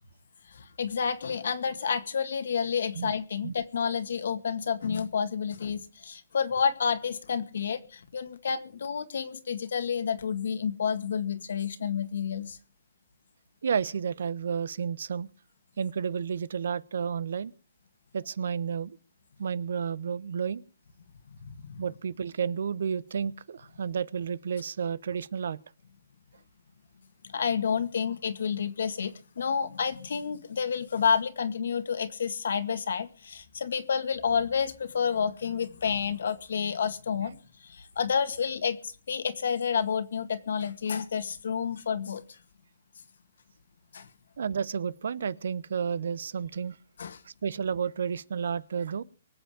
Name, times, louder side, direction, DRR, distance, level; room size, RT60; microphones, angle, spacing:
voice 1, 0.5-12.6 21.4-21.8 27.2-42.4 43.9-44.1 47.0-47.2, left 6 dB, 75° left, 1.9 m, -30 dB
voice 2, 13.6-15.3 15.8-17.5 18.1-19.0 19.4-20.6 21.8-25.6 44.4-46.8 47.2-49.0, right 7 dB, 75° right, 0.9 m, -31 dB
24.0 x 8.0 x 5.1 m
hypercardioid pair, 155°, 0 cm